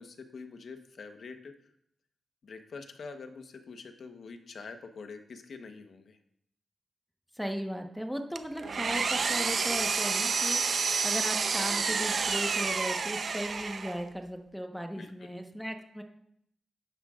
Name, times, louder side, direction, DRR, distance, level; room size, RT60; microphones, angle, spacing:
voice 1, 0.0-1.7 2.4-6.2 15.0-15.3, left 4 dB, 70° left, 6 dB, 1.1 m, -45 dB
voice 2, 7.3-16.0, equal, ahead, 3 dB, 1.2 m, -37 dB
Engine, 8.4-14.1, right 5 dB, 65° right, 0.8 m, -29 dB
13.0 x 9.9 x 2.5 m, 0.74 s
cardioid pair, 60°, 0 cm